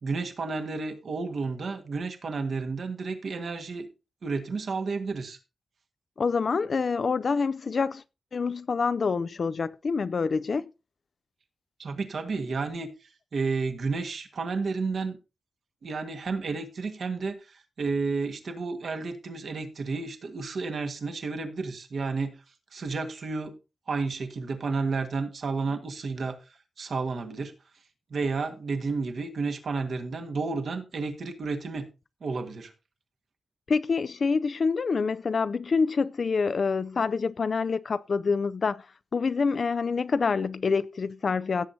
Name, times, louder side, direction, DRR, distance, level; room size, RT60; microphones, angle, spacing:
voice 1, 0.0-3.9 4.2-5.4 11.8-15.2 15.8-22.4 22.7-23.6 23.9-26.4 26.8-27.5 28.1-31.9 32.2-32.7, right 4 dB, 60° right, 1.6 m, -31 dB
voice 2, 6.2-8.0 8.3-10.7 33.7-38.8 39.1-41.7, left 5 dB, 45° left, 0.4 m, -26 dB
16.5 x 7.5 x 2.7 m
wide cardioid pair, 145°, 0 cm